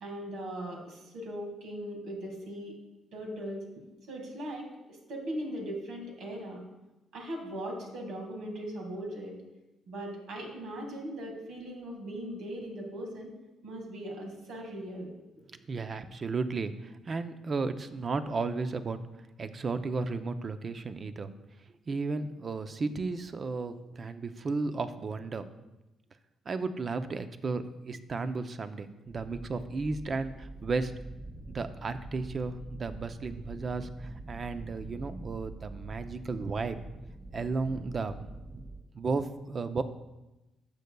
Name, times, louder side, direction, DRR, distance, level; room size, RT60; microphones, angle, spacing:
voice 1, 0.0-2.8 3.1-3.6 4.1-4.7 5.1-6.6 7.1-9.4 9.9-13.3 13.6-15.1, equal, 80° right, 1 dB, 1.8 m, -39 dB
voice 2, 15.7-19.0 19.4-21.3 21.9-25.5 26.5-30.9 31.5-36.8 37.3-38.3 38.5-38.6 38.9-39.8, right 4 dB, 40° right, 10 dB, 0.5 m, -34 dB
sound 1, 29.1-38.8, right 2 dB, 10° right, 2.1 m, -45 dB
12.0 x 6.7 x 2.3 m, 1.0 s
cardioid pair, 90°, 0 cm